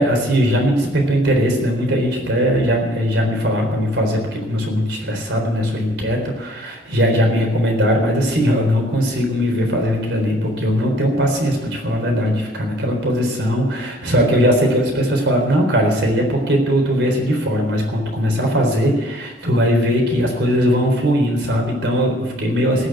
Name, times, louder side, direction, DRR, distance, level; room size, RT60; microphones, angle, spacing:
voice 1, 0.0-22.9, equal, 75° right, 2 dB, 4.0 m, -19 dB
19.0 x 6.5 x 9.1 m, 1.2 s
head